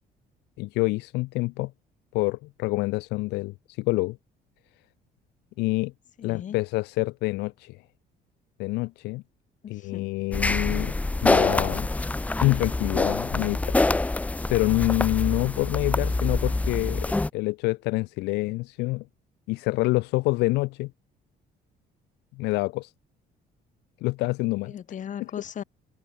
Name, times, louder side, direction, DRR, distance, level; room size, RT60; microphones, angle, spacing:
voice 1, 0.6-1.7 2.1-4.2 5.6-5.9 6.2-7.8 8.6-9.2 9.7-10.9 11.2-11.9 12.4-13.8 14.5-19.0 19.5-20.9 22.4-22.9 24.0-24.8, left 22 dB, 85° left, 0.4 m, -27 dB
voice 2, 6.2-6.6 9.6-10.1 24.6-25.6, left 9 dB, 50° left, 3.3 m, -38 dB
sound 1, 10.3-17.3, left 2 dB, 10° left, 0.4 m, -25 dB
cardioid pair, 110°, 17 cm